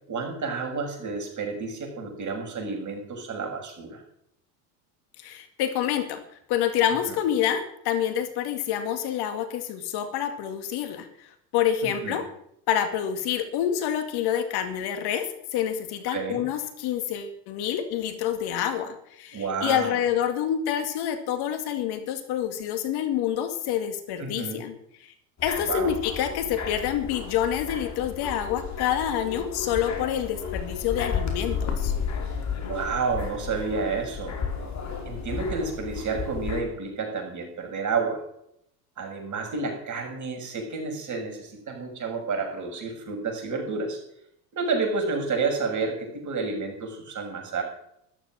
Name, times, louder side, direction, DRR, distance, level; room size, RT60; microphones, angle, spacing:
voice 1, 0.1-4.0 11.8-12.2 16.1-16.4 19.3-20.0 24.2-24.6 25.7-25.9 32.6-34.4 35.1-38.2 39.0-44.0 44.5-47.6, right 4 dB, 40° right, 3 dB, 6.9 m, -30 dB
voice 2, 5.2-6.2 6.5-12.3 12.7-24.7 25.0-25.1 25.4-31.9, left 10 dB, 55° left, 8 dB, 2.2 m, -27 dB
sound 1, 25.4-36.6, left 6 dB, 35° left, 5.0 m, -33 dB
13.5 x 13.0 x 6.3 m, 0.73 s
hypercardioid pair, 75°, 46 cm